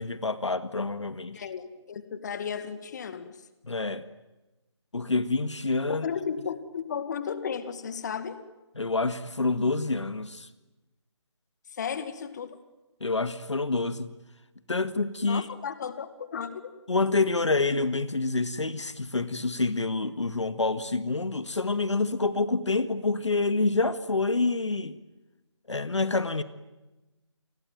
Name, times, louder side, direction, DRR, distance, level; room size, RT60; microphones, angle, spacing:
voice 1, 0.0-1.4 3.6-4.0 4.9-6.1 8.8-10.5 13.0-14.1 14.7-15.5 16.9-25.0 25.7-26.4, left 3 dB, 75° left, 1.8 m, -27 dB
voice 2, 1.3-3.4 5.9-8.4 11.7-12.6 15.2-16.5, left 7 dB, 35° left, 2.0 m, -34 dB
29.0 x 21.5 x 9.3 m
figure-of-eight pair, 155°, 15 cm